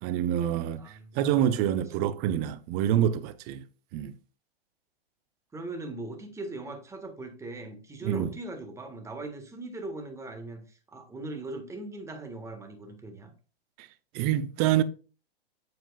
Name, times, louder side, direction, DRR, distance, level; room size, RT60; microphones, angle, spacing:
voice 1, 0.0-3.6 3.9-4.1 8.0-8.3 13.8-13.9 14.1-14.8, right 11 dB, 30° right, 0.7 m, -27 dB
voice 2, 0.8-1.2 5.5-13.3, right 2 dB, 10° right, 1.5 m, -39 dB
7.8 x 7.6 x 2.3 m
hypercardioid pair, 130°, 31 cm